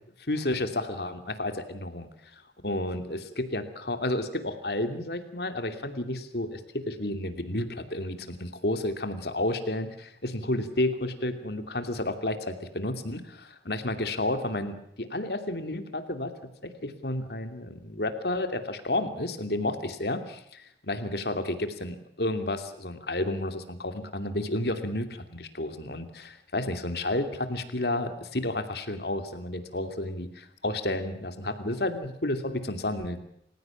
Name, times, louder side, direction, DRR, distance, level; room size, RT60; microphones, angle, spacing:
voice 1, 0.3-2.1 2.6-16.3 16.8-33.2, left 1 dB, 65° left, 8 dB, 2.7 m, -31 dB
29.0 x 16.0 x 7.3 m, 0.73 s
head